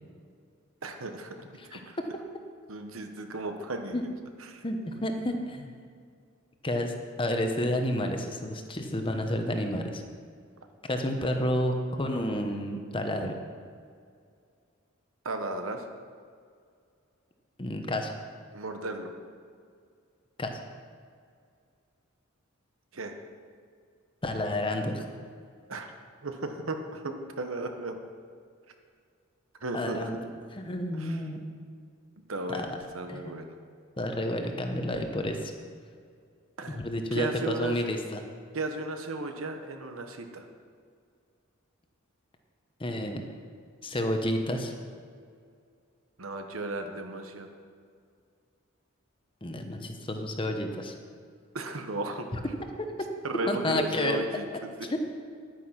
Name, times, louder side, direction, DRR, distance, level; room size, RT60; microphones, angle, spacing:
voice 1, 0.8-1.3 1.7-2.0 2.7-4.1 4.5-4.6 15.2-15.8 18.5-19.1 22.9-23.1 25.7-25.9 26.2-28.0 29.6-30.0 31.0-31.2 32.3-33.6 36.6-36.8 37.1-37.8 38.5-40.5 46.2-47.5 51.5-52.3 53.2-54.7, right 2 dB, 75° right, 6 dB, 1.2 m, -35 dB
voice 2, 4.6-5.7 6.6-10.0 10.9-13.3 17.6-18.1 20.4-20.5 24.2-25.0 29.7-30.2 30.5-31.4 32.5-32.7 33.1-33.4 34.0-35.5 36.7-38.2 42.8-43.2 43.8-44.7 49.4-51.0 52.8-52.9 53.5-54.2 54.9-55.0, left 1 dB, 25° left, 5 dB, 1.0 m, -30 dB
10.5 x 9.6 x 5.9 m, 2.2 s
head